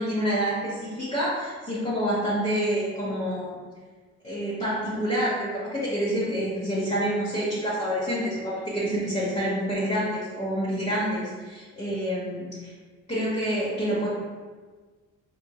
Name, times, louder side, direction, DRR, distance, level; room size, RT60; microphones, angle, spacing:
voice 1, 0.0-3.5 4.2-12.7 13.1-14.1, equal, 20° left, -9 dB, 1.1 m, -27 dB
4.4 x 3.1 x 2.3 m, 1.4 s
cardioid pair, 90°, 30 cm